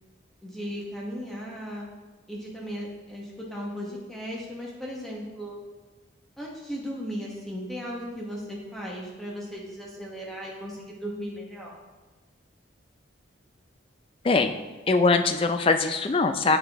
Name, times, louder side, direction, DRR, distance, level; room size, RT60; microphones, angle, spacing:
voice 1, 0.4-1.9 2.3-5.6 6.4-11.8, equal, ahead, -4 dB, 1.1 m, -36 dB
voice 2, 14.9-16.6, left 3 dB, 30° left, 7 dB, 0.3 m, -22 dB
7.4 x 5.8 x 3.5 m, 1.3 s
head